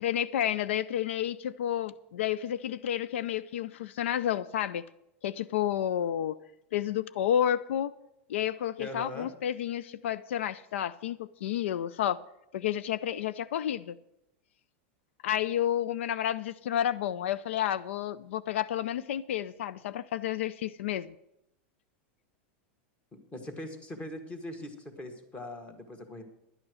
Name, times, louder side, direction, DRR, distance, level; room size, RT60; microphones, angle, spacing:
voice 1, 0.0-4.8 5.2-6.4 6.7-7.9 8.3-12.2 12.5-14.0 15.2-21.1, left 10 dB, 85° left, 16 dB, 0.4 m, -30 dB
voice 2, 8.8-9.3 23.1-26.2, left 1 dB, 20° left, 7 dB, 1.7 m, -41 dB
11.0 x 8.7 x 6.3 m, 0.84 s
supercardioid pair, 140°, 6 cm